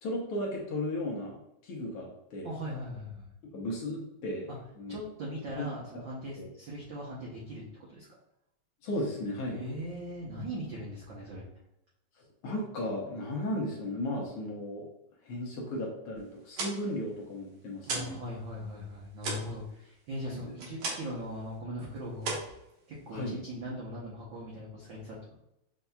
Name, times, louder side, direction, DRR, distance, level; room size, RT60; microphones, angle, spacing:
voice 1, 0.0-1.4 1.6-2.5 3.5-4.5 4.8-5.0 5.6-5.7 6.4-6.5 8.8-9.6 12.4-14.9 15.2-18.2 20.3-20.5 23.1-23.4, left 1 dB, 65° left, -2 dB, 1.5 m, -35 dB
voice 2, 2.4-3.3 4.9-7.6 7.9-8.1 9.5-11.5 17.8-22.4 22.9-25.3, equal, 85° right, -5 dB, 1.0 m, -40 dB
sound 1, 16.3-18.2 18.5-21.2 21.5-21.9 22.2-23.3, right 3 dB, 65° right, 1.8 m, -37 dB
7.0 x 2.7 x 2.2 m, 0.84 s
omnidirectional pair, 3.4 m